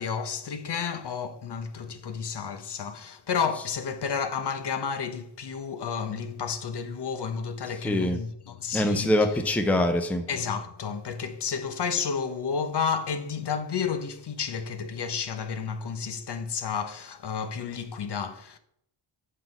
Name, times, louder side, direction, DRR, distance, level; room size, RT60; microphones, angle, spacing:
voice 1, 0.0-9.1 10.3-18.6, left 6 dB, 55° left, 0.9 m, -31 dB
voice 2, 7.8-8.2 8.7-10.3, left 1 dB, 5° left, 0.6 m, -24 dB
8.4 x 5.6 x 5.3 m
wide cardioid pair, 160°, 49 cm